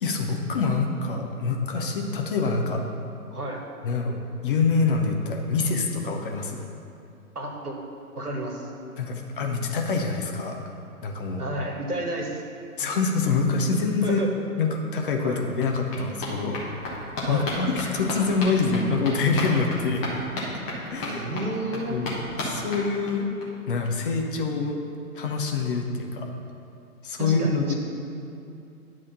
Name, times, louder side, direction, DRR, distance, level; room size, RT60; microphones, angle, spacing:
voice 1, 0.0-2.8 3.8-4.2 4.4-6.6 9.0-10.6 11.0-11.5 12.8-14.2 14.6-16.6 17.3-20.0 20.9-21.3 21.9-22.1 22.4-23.3 23.7-24.8 25.1-26.3 27.0-27.7, left 4 dB, 35° left, 2 dB, 0.8 m, -25 dB
voice 2, 3.3-3.6 7.3-7.8 8.1-8.7 11.4-12.4 14.0-14.3 15.2-15.4 17.2-17.5 21.0-22.0 27.2-27.7, right 1 dB, 85° right, 0 dB, 1.5 m, -31 dB
sound 1, 14.7-14.8 15.0-23.5 23.8-23.9 24.1-24.2 24.5-24.6, left 1 dB, 15° left, 1.1 m, -34 dB
10.0 x 3.6 x 6.8 m, 2.6 s
figure-of-eight pair, 130°, 44 cm